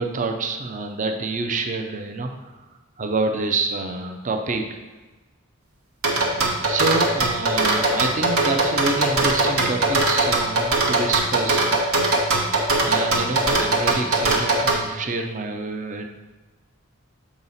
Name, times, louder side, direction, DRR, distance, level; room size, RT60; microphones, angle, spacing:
voice 1, 0.0-2.3 3.0-4.7 6.2-11.8 12.8-16.1, right 3 dB, 35° right, 5 dB, 0.5 m, -27 dB
sound 1, 6.0-14.8, right 2 dB, 70° right, 1.2 m, -20 dB
7.2 x 4.9 x 4.0 m, 1.2 s
head